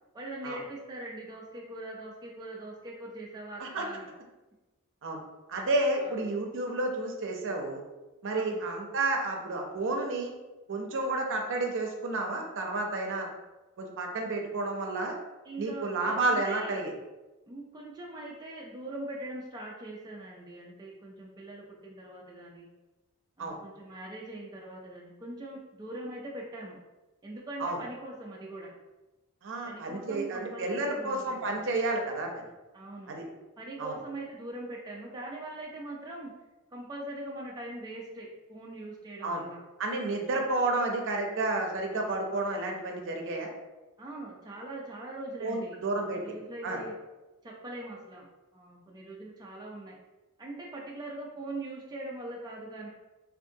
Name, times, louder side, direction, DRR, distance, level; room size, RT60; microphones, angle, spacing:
voice 1, 0.1-4.1 6.0-6.2 8.3-8.6 15.4-16.7 17.5-22.7 23.4-26.8 27.2-28.7 29.6-31.6 32.7-33.1 33.6-36.3 36.7-39.6 44.0-46.9 47.4-48.3 48.5-50.0 50.4-52.9, right 1 dB, 20° right, -3 dB, 0.3 m, -42 dB
voice 2, 5.5-7.8 8.2-10.3 10.7-13.3 13.8-15.1 15.6-16.9 23.4-23.6 27.6-27.8 29.4-32.4 33.1-33.2 33.8-34.0 39.2-39.4 39.8-43.5 45.4-46.2 46.6-46.8, right 2 dB, 60° right, 2 dB, 0.6 m, -31 dB
3.5 x 2.5 x 2.7 m, 1.1 s
head